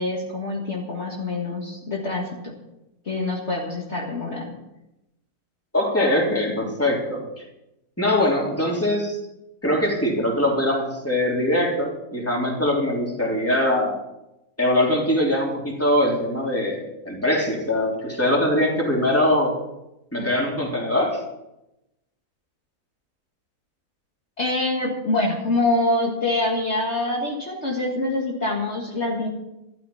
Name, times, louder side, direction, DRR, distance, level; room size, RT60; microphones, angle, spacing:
voice 1, 0.0-2.5 3.1-4.6 24.4-29.3, left 2 dB, 45° left, -2 dB, 2.0 m, -25 dB
voice 2, 5.7-7.2 8.0-9.2 9.6-14.0 14.6-19.5 20.1-21.2, left 1 dB, 10° left, -2 dB, 3.3 m, -22 dB
13.0 x 12.5 x 5.6 m, 0.91 s
omnidirectional pair, 1.7 m